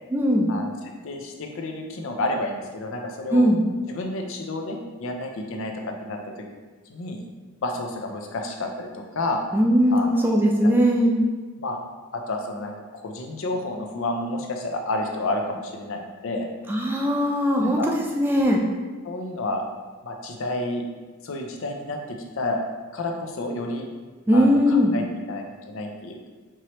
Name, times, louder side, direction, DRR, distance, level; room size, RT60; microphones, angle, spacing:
voice 1, 0.1-0.5 3.3-3.6 9.5-11.2 16.7-17.8 18.2-18.6 24.3-24.9, equal, 10° right, -1 dB, 0.3 m, -19 dB
voice 2, 1.0-3.5 3.9-5.7 6.0-6.2 6.9-7.2 7.6-9.5 9.9-10.3 10.6-10.7 11.6-11.8 12.1-16.5 17.6-17.9 19.0-19.6 20.0-20.8 21.2-22.6 22.9-23.9 24.3-26.3, left 2 dB, 60° left, 2 dB, 0.5 m, -30 dB
4.6 x 3.0 x 2.9 m, 1.3 s
head